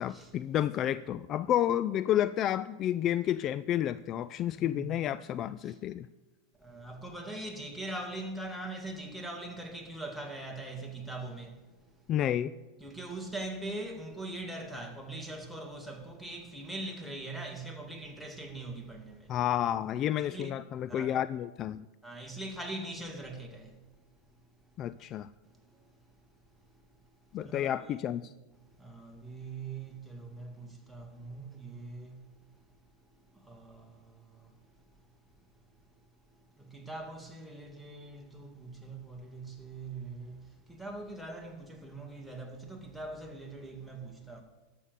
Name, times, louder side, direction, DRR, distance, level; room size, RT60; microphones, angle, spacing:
voice 1, 0.0-6.1 12.1-12.5 19.3-21.9 24.8-25.3 27.3-28.3, left 11 dB, 40° left, 0.3 m, -30 dB
voice 2, 4.5-4.9 5.6-5.8 6.6-11.6 12.8-19.3 20.3-21.3 22.0-23.8 25.7-25.9 27.4-28.0 28.8-32.2 33.3-34.5 36.6-44.4, right 2 dB, ahead, 2.1 m, -42 dB
12.5 x 6.8 x 6.7 m
hypercardioid pair, 110°, 0 cm